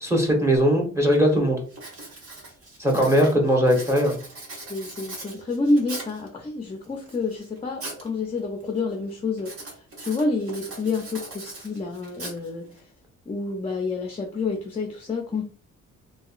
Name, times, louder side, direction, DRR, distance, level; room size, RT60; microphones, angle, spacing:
voice 1, 0.0-1.6 2.8-4.2, equal, 10° right, 1.0 m, -20 dB
Writing, 1.1-1.4 1.7-6.3 6.8-8.1 8.4-8.8 9.4-12.8, right 2 dB, 50° right, 1.2 m, -40 dB
voice 2, 4.7-12.9 13.3-15.4, left 3 dB, 20° left, 0.5 m, -28 dB
2.8 x 2.8 x 2.4 m
cardioid pair, 90°, 30 cm